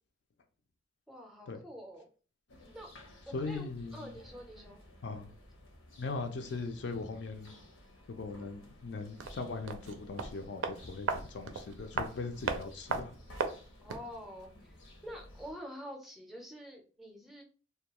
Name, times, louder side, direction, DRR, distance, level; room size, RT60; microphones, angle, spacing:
voice 1, 1.1-2.1 2.7-2.9 3.3-4.8 13.8-17.4, equal, ahead, 0.4 m, -47 dB
sound 1, 2.5-15.5, left 1 dB, 85° left, 0.7 m, -56 dB
voice 2, 3.3-4.1 5.0-5.3 6.0-7.5 8.1-13.1, left 3 dB, 60° left, 0.4 m, -39 dB
sound 2, 9.2-14.2 14.4-14.5, right 5 dB, 90° right, 0.4 m, -38 dB
2.2 x 2.2 x 2.9 m
head